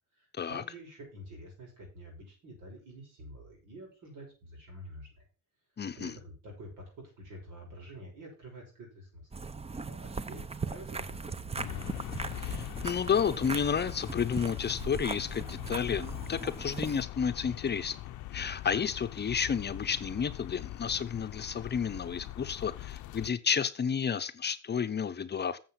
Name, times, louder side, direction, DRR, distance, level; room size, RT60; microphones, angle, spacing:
voice 1, 0.2-5.3 6.0-11.8, equal, 85° right, 6.0 m, -48 dB
voice 2, 5.8-6.1 12.4-17.9 18.3-25.6, left 7 dB, 35° left, 0.7 m, -31 dB
sound 1, 9.3-17.0, right 4 dB, 20° right, 0.6 m, -39 dB
sound 2, 11.6-23.3, left 14 dB, 75° left, 0.6 m, -41 dB
7.6 x 7.2 x 5.8 m
cardioid pair, 90°, 30 cm